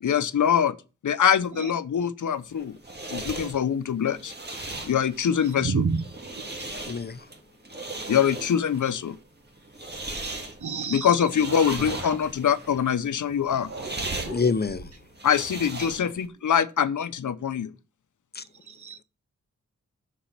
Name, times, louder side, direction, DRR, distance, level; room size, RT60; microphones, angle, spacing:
voice 1, 0.0-0.7 1.0-2.7 3.1-4.3 4.8-5.7 8.1-9.1 10.9-13.7 15.2-17.7, left 8 dB, 90° left, 0.7 m, -24 dB
sound 1, 2.4-16.3, right 2 dB, 35° right, 1.9 m, -38 dB
voice 2, 5.6-6.7 9.9-11.3 15.7-15.9 18.6-19.0, right 5 dB, 80° right, 1.1 m, -31 dB
voice 3, 6.8-7.2 14.3-14.9 18.3-18.4, left 5 dB, 35° left, 0.7 m, -27 dB
sound 2, 11.4-12.7 13.6-15.1 15.6-16.1, right 3 dB, 55° right, 2.1 m, -40 dB
7.2 x 6.3 x 7.1 m
wide cardioid pair, 105°, 29 cm